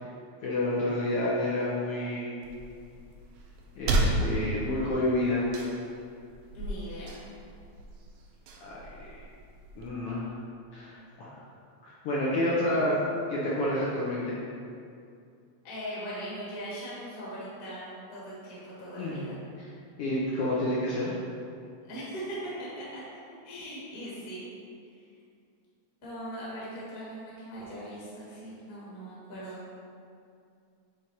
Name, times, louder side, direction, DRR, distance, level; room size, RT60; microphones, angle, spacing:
voice 1, 0.4-2.4 3.8-5.5 8.6-9.2 9.8-10.3 10.7-11.3 11.8-13.0 13.3-14.4 19.0-19.2 20.0-21.1, left 1 dB, 65° left, -7 dB, 1.5 m, -29 dB
spit take, 2.4-9.9, right 1 dB, 80° right, 1.9 m, -34 dB
voice 2, 6.5-7.2 15.6-19.4 21.8-23.0 23.4-24.4 24.9-25.0 26.0-29.6, equal, 35° left, -8 dB, 1.6 m, -40 dB
7.5 x 3.6 x 4.5 m, 2.4 s
omnidirectional pair, 3.4 m